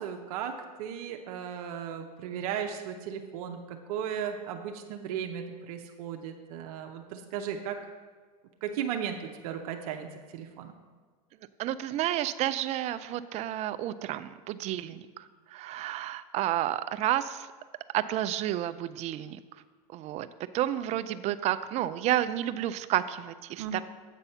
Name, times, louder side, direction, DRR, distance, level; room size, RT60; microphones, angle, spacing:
voice 1, 0.0-7.8 8.6-10.7 14.9-15.0 23.6-23.8, right 8 dB, 65° right, 4 dB, 0.7 m, -36 dB
voice 2, 11.6-15.0 15.5-17.5 17.9-19.4 19.9-20.3 20.5-23.8, right 13 dB, 35° right, 13 dB, 0.4 m, -30 dB
8.2 x 4.1 x 6.7 m, 1.5 s
supercardioid pair, 120°, 20 cm